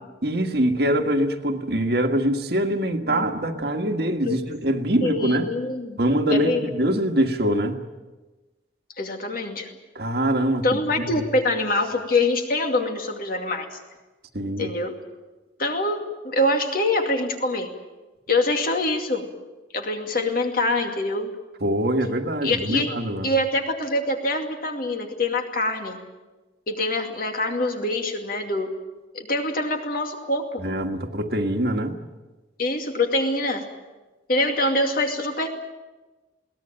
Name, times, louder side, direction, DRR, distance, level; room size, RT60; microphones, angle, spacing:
voice 1, 0.2-5.5 6.0-7.8 9.9-11.2 14.3-14.7 21.6-23.3 30.6-32.0, right 1 dB, 55° right, 5 dB, 1.6 m, -24 dB
voice 2, 5.0-6.0 6.3-6.6 9.0-9.7 10.6-13.8 14.6-14.9 15.6-17.7 18.3-19.2 19.7-21.3 22.4-22.9 23.2-26.0 26.7-28.7 29.1-30.6 32.6-33.7 34.3-35.5, left 2 dB, 50° left, 4 dB, 2.5 m, -24 dB
22.0 x 17.5 x 9.0 m, 1.2 s
head